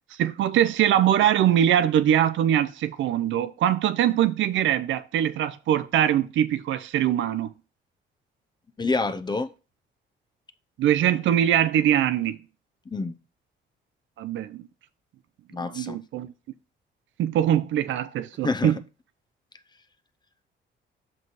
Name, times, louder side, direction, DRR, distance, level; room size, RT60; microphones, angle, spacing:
voice 1, 0.2-7.5 10.8-12.4 14.2-14.6 15.6-16.3 17.2-18.8, right 10 dB, 75° right, 0.6 m, -22 dB
voice 2, 8.8-9.5 12.9-13.1 15.5-16.0 18.4-18.7, left 3 dB, 20° left, 0.7 m, -27 dB
6.2 x 5.4 x 4.0 m
cardioid pair, 90°, 20 cm